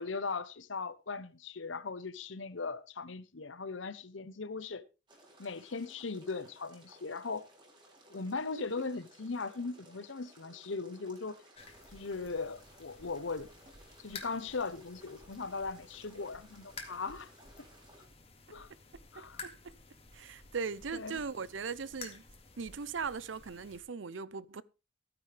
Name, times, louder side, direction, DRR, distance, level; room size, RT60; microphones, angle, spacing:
voice 1, 0.0-4.8 5.4-7.5 8.1-11.4 11.9-13.5 14.0-17.3 18.5-18.7 19.1-19.4 20.9-21.2, left 4 dB, 80° left, 0.9 m, -39 dB
sound 1, 5.1-18.1, right 1 dB, 25° right, 3.5 m, -60 dB
sound 2, 11.6-23.8, left 4 dB, 30° left, 2.1 m, -52 dB
voice 2, 19.2-19.7 20.1-22.2 22.6-24.6, right 5 dB, 80° right, 0.6 m, -39 dB
15.5 x 9.8 x 3.3 m
head